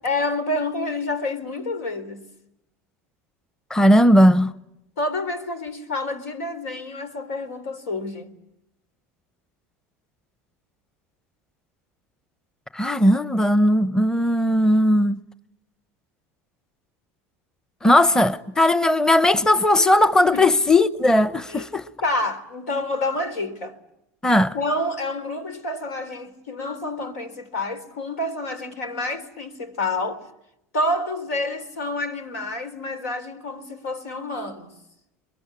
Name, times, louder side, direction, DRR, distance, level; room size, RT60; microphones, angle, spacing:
voice 1, 0.0-2.3 5.0-8.4 20.3-20.5 21.5-21.7 22.0-23.8 24.5-30.2 30.7-34.7, left 2 dB, 85° left, 3.8 m, -28 dB
voice 2, 3.7-4.5 12.7-15.2 17.8-21.9 24.2-24.5, left 1 dB, 10° left, 1.0 m, -17 dB
30.0 x 23.0 x 8.6 m
hypercardioid pair, 95°, 8 cm